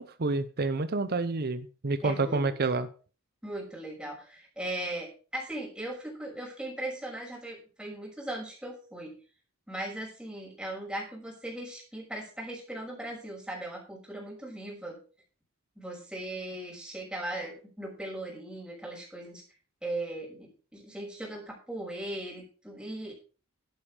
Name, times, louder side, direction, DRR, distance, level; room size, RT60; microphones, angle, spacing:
voice 1, 0.0-2.9, right 3 dB, 45° right, 11 dB, 0.8 m, -29 dB
voice 2, 2.0-2.4 3.4-9.1 9.7-15.0 15.8-19.4 19.8-23.1, right 1 dB, 5° right, -3 dB, 6.2 m, -38 dB
12.0 x 8.9 x 5.0 m, 0.37 s
head